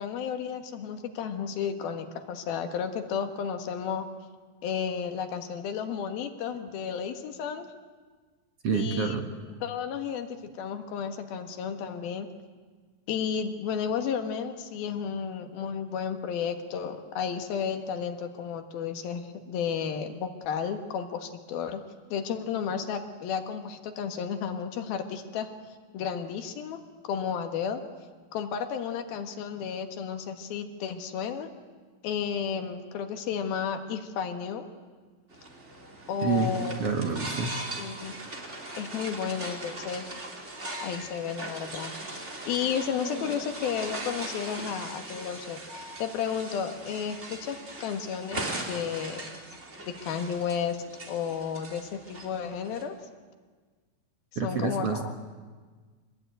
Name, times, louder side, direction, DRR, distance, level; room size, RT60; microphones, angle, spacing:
voice 1, 0.0-4.1 4.6-7.7 8.7-9.2 9.6-12.3 13.1-21.8 22.1-25.5 25.9-26.8 27.0-27.8 28.3-31.5 32.0-34.7 36.1-36.9 37.6-38.1 38.8-40.0 40.8-45.6 46.0-49.3 49.9-53.0 54.4-55.1, left 7 dB, 85° left, 7 dB, 3.4 m, -32 dB
voice 2, 8.6-9.2 36.2-36.5 36.8-37.5 54.4-55.1, right 5 dB, 50° right, 4 dB, 2.1 m, -28 dB
sound 1, 35.3-52.8, right 2 dB, 20° right, 2.8 m, -40 dB
25.5 x 19.5 x 9.2 m, 1.5 s
omnidirectional pair, 4.2 m